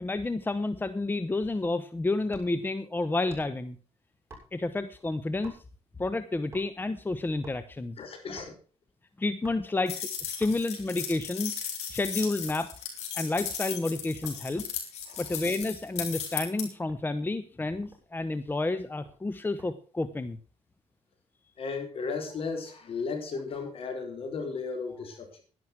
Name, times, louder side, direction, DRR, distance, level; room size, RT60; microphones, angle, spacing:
voice 1, 0.0-3.8 4.5-5.6 6.0-8.0 9.2-11.5 11.9-12.7 13.1-14.6 15.2-20.4, left 2 dB, 20° left, 12 dB, 0.9 m, -30 dB
sound 1, 1.4-1.7 2.3-2.7 3.3-3.7 4.3-4.8 5.4-5.8 6.5-6.9 7.3-7.7 8.4-8.6 9.4-9.8 10.4-10.8 11.4-12.7 13.3-13.5 14.2-14.5 15.1-16.2 16.9-17.1 17.5-17.6 17.8-18.2 19.0-19.7 20.1-20.4, right 2 dB, 20° right, 7.2 m, -52 dB
voice 2, 8.0-8.5 15.1-15.2 21.6-25.4, left 4 dB, 60° left, 5 dB, 4.3 m, -35 dB
sound 2, 9.9-16.6, left 8 dB, 85° left, 3.9 m, -36 dB
11.5 x 11.0 x 6.0 m, 0.38 s
cardioid pair, 90°, 11 cm